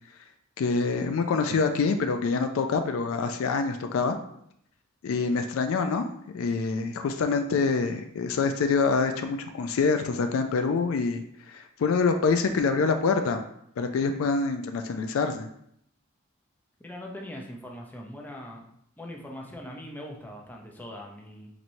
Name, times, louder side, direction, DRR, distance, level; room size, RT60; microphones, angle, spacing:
voice 1, 0.6-4.2 5.0-13.4 13.8-15.5, left 4 dB, 80° left, 7 dB, 0.4 m, -26 dB
voice 2, 16.8-18.6 19.0-21.5, left 1 dB, 10° left, 0 dB, 0.5 m, -41 dB
4.3 x 3.0 x 2.6 m, 0.71 s
head